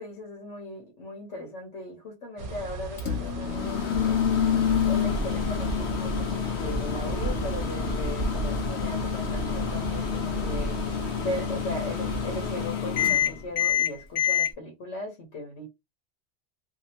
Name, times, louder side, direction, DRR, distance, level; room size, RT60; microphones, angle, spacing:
voice 1, 0.0-4.3 4.9-15.7, left 2 dB, 90° left, 1.3 m, -38 dB
sound 1, 2.4-12.7, right 2 dB, 55° right, 0.7 m, -34 dB
Microwave oven, 3.0-14.5, left 8 dB, 70° left, 0.9 m, -28 dB
2.8 x 2.4 x 2.7 m
omnidirectional pair, 1.2 m